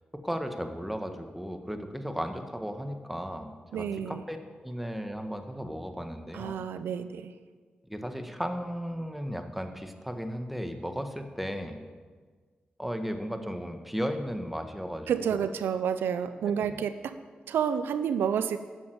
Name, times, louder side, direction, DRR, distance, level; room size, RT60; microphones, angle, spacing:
voice 1, 0.1-6.6 7.9-11.8 12.8-15.5 16.4-16.8, equal, 5° right, 6 dB, 1.6 m, -35 dB
voice 2, 3.7-4.2 6.3-7.3 15.1-17.2 17.5-18.6, right 8 dB, 90° right, 11 dB, 0.5 m, -29 dB
11.0 x 7.1 x 8.0 m, 1.5 s
supercardioid pair, 40°, 4 cm